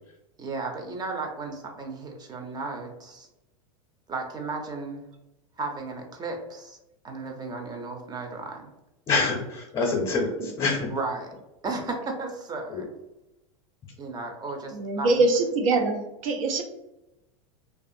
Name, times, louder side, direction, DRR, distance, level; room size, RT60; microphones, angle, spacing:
voice 1, 0.4-3.3 4.1-5.0 5.6-6.8 7.0-8.7 10.9-11.3 11.6-12.9 14.0-15.2, right 3 dB, 25° right, 2 dB, 0.6 m, -34 dB
voice 2, 9.1-10.9 12.7-12.9, left 3 dB, 30° left, 0 dB, 0.7 m, -26 dB
voice 3, 14.7-16.6, right 3 dB, 75° right, 4 dB, 0.6 m, -24 dB
2.4 x 2.4 x 2.6 m, 0.93 s
hypercardioid pair, 100°, 18 cm